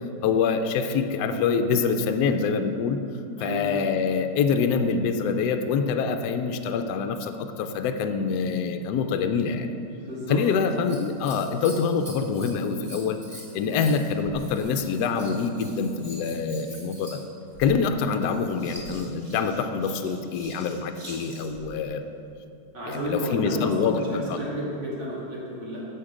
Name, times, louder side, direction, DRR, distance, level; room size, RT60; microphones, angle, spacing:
voice 1, 0.2-3.0 3.4-9.7 10.3-13.2 13.5-17.2 17.6-22.0 22.9-24.4, left 5 dB, 75° left, 7 dB, 1.1 m, -25 dB
voice 2, 3.4-3.7 10.0-10.4 13.4-13.6 22.7-25.8, equal, 75° right, -6 dB, 2.8 m, -32 dB
Scissors, 10.3-21.7 23.6-24.2 24.9-25.0, equal, 30° right, 2.0 m, -46 dB
13.5 x 5.2 x 5.0 m, 2.6 s
omnidirectional pair, 1.9 m